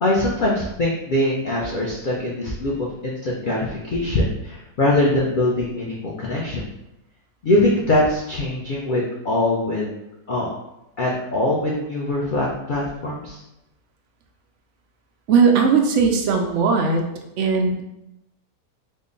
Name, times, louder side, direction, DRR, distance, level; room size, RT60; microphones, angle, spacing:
voice 1, 0.0-6.7 7.4-9.9 10.3-10.5 11.0-13.4, left 1 dB, 80° left, -3 dB, 0.4 m, -22 dB
voice 2, 15.3-17.0 17.4-17.8, right 5 dB, 70° right, 3 dB, 0.7 m, -18 dB
3.7 x 2.1 x 3.8 m, 0.89 s
omnidirectional pair, 1.6 m